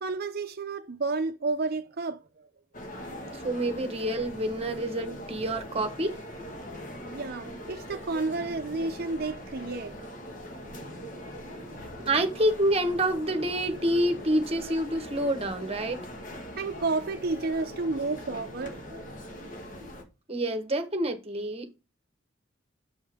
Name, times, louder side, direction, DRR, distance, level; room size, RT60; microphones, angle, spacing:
voice 1, 0.0-2.5 6.9-10.0 10.9-11.0 16.6-19.1, right 3 dB, 50° right, 0.6 m, -31 dB
sound 1, 2.7-20.0, equal, 40° left, 1.6 m, -41 dB
voice 2, 3.4-6.1 12.0-16.0 20.3-21.8, right 1 dB, 30° right, 1.1 m, -27 dB
7.7 x 5.5 x 3.5 m
head